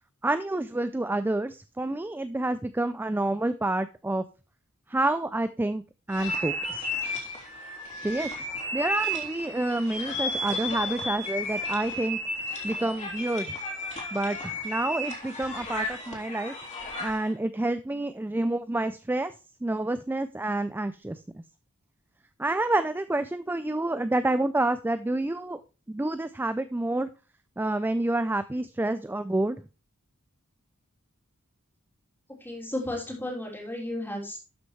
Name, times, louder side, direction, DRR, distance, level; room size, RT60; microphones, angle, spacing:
voice 1, 0.2-4.2 4.9-5.8 6.1-6.9 8.0-12.2 12.6-13.6 14.1-16.6 17.0-19.4 19.6-21.4 22.4-25.6 25.9-27.1 27.6-29.6, right 2 dB, 10° right, 11 dB, 0.3 m, -28 dB
sound 1, 6.1-17.3, left 1 dB, 30° left, 3.5 m, -33 dB
voice 2, 32.3-34.4, left 1 dB, 10° left, -1 dB, 3.2 m, -34 dB
12.5 x 6.5 x 3.2 m, 0.32 s
head